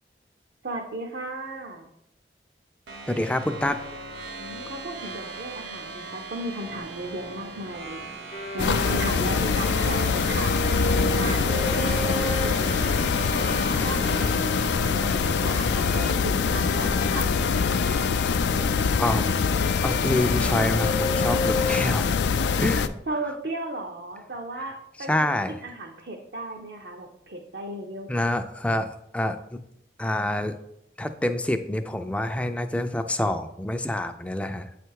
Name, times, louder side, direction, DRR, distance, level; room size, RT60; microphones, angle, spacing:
voice 1, 0.6-1.9 4.4-8.0 8.5-10.9 11.2-11.8 12.4-12.8 13.7-17.3 23.1-28.2, right 1 dB, 65° right, 2 dB, 0.7 m, -35 dB
sound 1, 2.9-16.1, right 3 dB, 90° right, 0.9 m, -38 dB
voice 2, 3.1-3.8 19.0-19.3 19.8-22.1 22.6-22.9 25.0-25.6 28.1-29.6 30.0-30.6 31.0-34.7, left 1 dB, 5° left, 8 dB, 0.3 m, -27 dB
Bowed string instrument, 8.3-21.8, left 1 dB, 70° left, 0.8 m, -33 dB
sound 2, 8.6-22.9, left 5 dB, 85° left, 0.4 m, -24 dB
8.5 x 3.3 x 4.6 m, 0.80 s
head